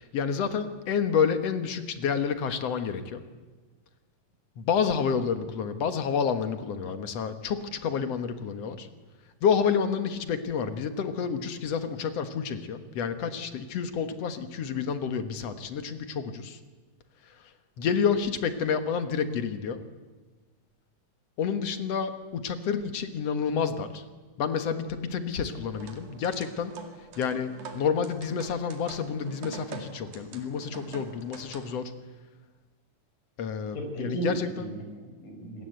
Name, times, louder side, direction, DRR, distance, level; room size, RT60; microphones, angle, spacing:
voice 1, 0.0-3.2 4.6-8.9 9.4-16.6 17.8-19.8 21.4-24.0 24.4-26.7 27.2-31.9 33.4-34.7, left 6 dB, 55° left, 9 dB, 2.2 m, -29 dB
sound 1, 25.5-31.8, right 6 dB, 90° right, 4.0 m, -45 dB
voice 2, 33.7-35.7, right 2 dB, 70° left, 3 dB, 6.4 m, -35 dB
27.0 x 20.0 x 8.1 m, 1.3 s
omnidirectional pair, 3.9 m